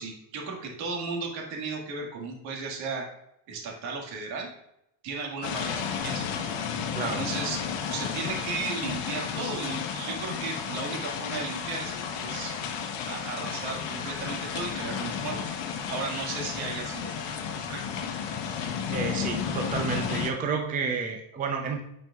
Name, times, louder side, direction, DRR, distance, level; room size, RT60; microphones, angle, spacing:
voice 1, 0.0-3.1 3.5-4.5 5.0-6.4 7.2-7.6 7.9-12.5 13.1-15.6 15.9-17.8 18.6-18.7, right 4 dB, 65° right, 0 dB, 1.9 m, -35 dB
sound 1, 5.4-20.3, left 7 dB, 55° left, 1.1 m, -32 dB
voice 2, 7.0-7.3 18.9-21.8, right 5 dB, 15° right, 3 dB, 0.6 m, -30 dB
8.6 x 5.4 x 2.4 m, 0.78 s
cardioid pair, 130°, 50 cm